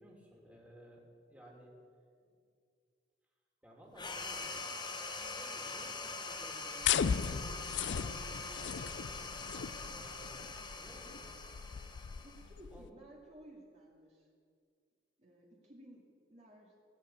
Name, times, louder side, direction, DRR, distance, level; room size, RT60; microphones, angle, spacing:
voice 1, 0.0-1.7 3.6-9.4 9.9-11.4 12.7-12.9, right 1 dB, 10° right, -3 dB, 2.9 m, -57 dB
sound 1, 4.0-12.8, left 3 dB, 25° left, 1.2 m, -43 dB
sound 2, 6.8-12.9, left 7 dB, 75° left, 0.4 m, -37 dB
voice 2, 12.2-14.3 15.2-16.0 16.3-16.7, right 1 dB, 40° right, -3 dB, 2.3 m, -56 dB
18.5 x 7.8 x 8.6 m, 2.2 s
head